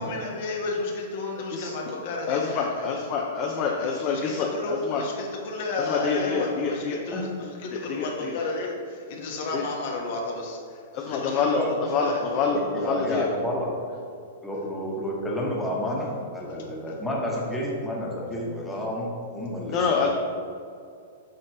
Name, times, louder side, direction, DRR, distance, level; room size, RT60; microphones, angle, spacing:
voice 1, 0.0-2.9 3.8-7.3 7.6-10.8 11.0-11.4 12.0-12.2 16.8-16.9, left 3 dB, 60° left, 0 dB, 1.1 m, -32 dB
voice 2, 2.3-5.0 5.8-7.0 7.7-8.4 9.5-9.7 10.9-11.6 11.9-13.3 19.7-20.1, left 5 dB, 40° left, 0 dB, 0.6 m, -27 dB
voice 3, 12.5-13.7 14.4-20.0, equal, 5° left, -4 dB, 1.2 m, -30 dB
7.5 x 4.3 x 3.0 m, 2.4 s
hypercardioid pair, 125°, 0 cm